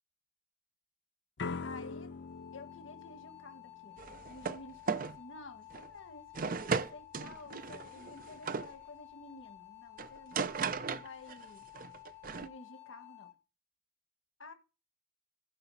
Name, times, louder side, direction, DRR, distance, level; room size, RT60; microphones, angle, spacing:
sound 1, 1.4-4.3, left 4 dB, 60° left, 0.7 m, -43 dB
voice 1, 1.6-2.1 2.5-10.3 10.9-11.6 12.3-13.3 14.4-14.5, left 3 dB, 75° left, 1.5 m, -51 dB
sound 2, 2.1-13.3, left 17 dB, 20° left, 3.2 m, -53 dB
sound 3, 4.0-4.6 4.9-5.2 5.7-5.9 6.3-8.7 10.0-11.5 11.7-12.5, right 5 dB, 45° right, 0.5 m, -36 dB
15.5 x 5.6 x 5.5 m
head